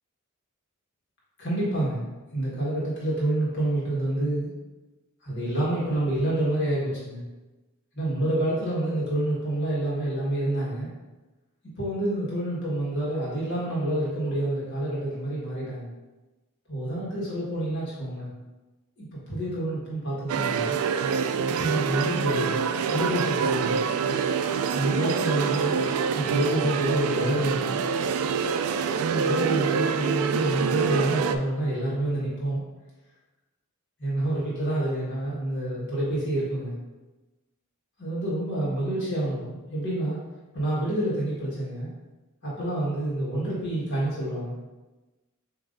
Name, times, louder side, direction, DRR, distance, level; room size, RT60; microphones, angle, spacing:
voice 1, 1.4-2.0 2.3-4.5 5.2-7.2 7.9-10.9 11.8-15.9 16.7-18.3 19.0-20.7 21.6-23.8 24.7-25.8 26.1-27.8 29.0-32.6 34.0-36.7 38.0-40.2 40.5-41.9 42.4-44.6, right 1 dB, 55° left, -7 dB, 1.4 m, -28 dB
sound 1, 20.3-31.4, right 6 dB, 75° right, 0.3 m, -26 dB
7.4 x 2.7 x 2.6 m, 1.1 s
head